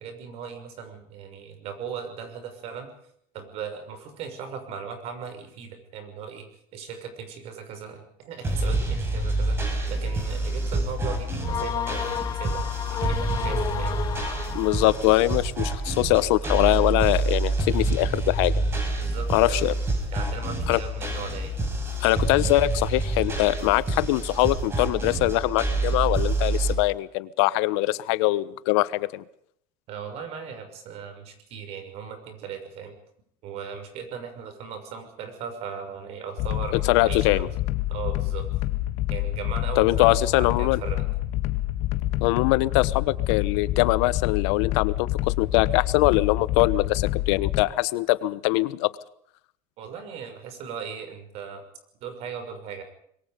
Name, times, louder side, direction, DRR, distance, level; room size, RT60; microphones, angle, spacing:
voice 1, 0.0-2.9 3.3-12.6 12.9-14.0 19.0-19.7 20.1-21.5 29.9-33.0 33.4-37.5 37.9-38.5 39.1-41.1 49.8-51.6 52.0-52.8, right 7 dB, 45° right, 7 dB, 6.3 m, -38 dB
sound 1, 8.4-26.7, right 2 dB, 15° right, 5.8 m, -27 dB
sound 2, 11.4-15.2, left 9 dB, 25° left, 0.8 m, -32 dB
voice 2, 14.5-18.5 19.3-19.7 20.7-20.8 22.0-29.2 36.9-37.5 39.8-40.8 42.2-48.9, left 18 dB, 85° left, 17 dB, 1.1 m, -22 dB
sound 3, 36.4-47.6, left 15 dB, 50° left, 1.7 m, -27 dB
26.0 x 22.5 x 5.3 m, 0.69 s
cardioid pair, 170°, 14 cm